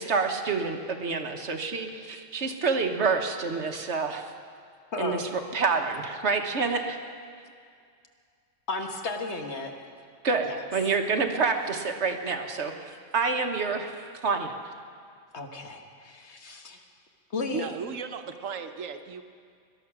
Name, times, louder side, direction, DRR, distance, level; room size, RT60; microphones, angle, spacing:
voice 1, 0.0-4.3 5.0-7.0 10.2-13.9 14.2-14.5, right 4 dB, 60° right, 4 dB, 1.4 m, -28 dB
voice 2, 4.9-5.3 8.7-9.7 10.4-10.6 15.3-16.8 17.3-17.7, left 3 dB, 60° left, 4 dB, 1.5 m, -34 dB
voice 3, 17.5-19.2, right 6 dB, 80° right, 8 dB, 1.2 m, -35 dB
19.0 x 12.0 x 6.0 m, 2.2 s
omnidirectional pair, 1.3 m